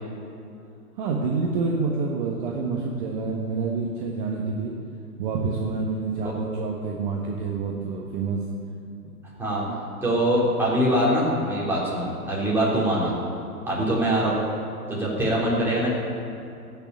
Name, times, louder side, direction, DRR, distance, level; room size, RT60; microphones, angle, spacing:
voice 1, 1.0-4.7 5.2-8.4 9.0-9.1 9.7-9.8, right 4 dB, 30° right, -2 dB, 1.5 m, -27 dB
voice 2, 10.0-13.1 13.7-14.4 14.9-15.9, right 1 dB, 5° right, -7 dB, 3.8 m, -23 dB
15.5 x 7.1 x 8.8 m, 2.6 s
figure-of-eight pair, 130°, 47 cm